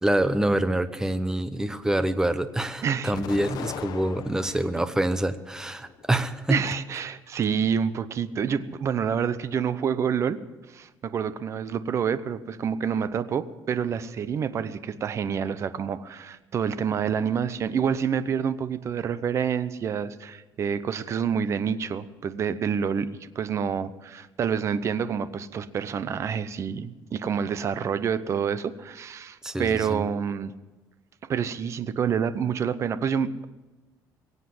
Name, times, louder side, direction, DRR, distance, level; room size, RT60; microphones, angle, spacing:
voice 1, 0.0-6.7 29.4-30.0, right 1 dB, 5° right, 11 dB, 0.8 m, -26 dB
voice 2, 2.8-3.1 6.5-10.4 10.7-23.1 23.3-30.5 31.3-33.5, right 7 dB, 40° right, 14 dB, 0.7 m, -28 dB
Explosion, 3.1-4.8 5.3-6.2, left 9 dB, 60° left, 0.9 m, -39 dB
22.5 x 8.3 x 7.7 m, 1.1 s
cardioid pair, 150°, 8 cm